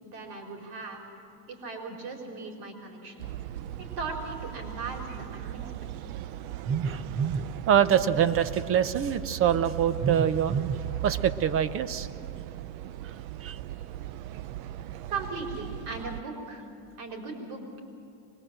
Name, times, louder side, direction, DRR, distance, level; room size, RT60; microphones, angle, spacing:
voice 1, 0.0-1.0 1.5-3.3 3.8-5.6 6.0-6.1 15.1-16.7 17.0-17.8, right 3 dB, 60° right, 1 dB, 4.6 m, -38 dB
sound 1, 3.2-16.2, right 13 dB, 75° right, 0.8 m, -38 dB
voice 2, 6.7-12.1 13.4-13.6, right 8 dB, 30° right, 13 dB, 0.8 m, -25 dB
23.5 x 21.0 x 7.7 m, 2.7 s
cardioid pair, 155°, 43 cm